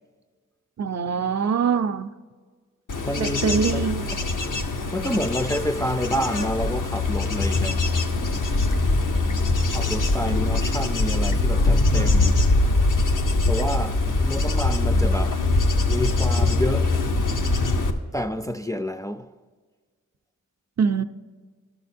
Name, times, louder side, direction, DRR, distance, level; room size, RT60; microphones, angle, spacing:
voice 1, 0.8-2.1 3.2-4.1 20.8-21.0, right 6 dB, 60° right, 0.5 m, -23 dB
Bird / Insect / Wind, 2.9-17.9, left 2 dB, 85° left, 0.8 m, -22 dB
voice 2, 3.0-3.9 4.5-4.6 4.9-7.9 9.7-12.5 13.5-15.4 15.9-17.0 18.1-19.3, equal, 10° left, 0.3 m, -29 dB
11.5 x 6.7 x 4.3 m
wide cardioid pair, 50°, 30 cm